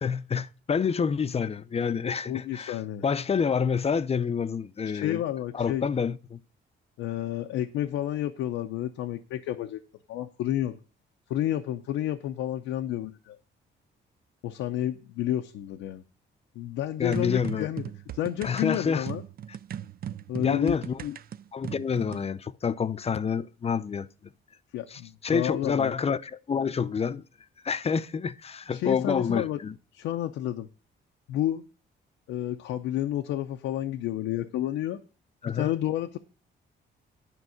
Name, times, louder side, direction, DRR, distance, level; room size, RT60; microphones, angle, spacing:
voice 1, 0.0-5.2 5.5-6.4 17.0-17.7 18.4-19.1 20.4-21.0 21.5-24.3 24.9-27.2 27.6-29.8 35.4-35.7, left 6 dB, 30° left, 0.6 m, -28 dB
voice 2, 2.3-3.0 4.9-5.9 7.0-9.8 10.1-10.8 11.3-13.4 14.4-16.0 16.6-17.8 18.1-19.2 20.3-21.2 24.7-25.9 28.7-29.6 29.9-30.7 31.3-31.6 32.3-35.0 35.5-36.2, left 12 dB, 90° left, 0.7 m, -30 dB
sound 1, 17.1-22.3, right 10 dB, 50° right, 0.4 m, -39 dB
9.9 x 4.6 x 7.7 m
cardioid pair, 90°, 20 cm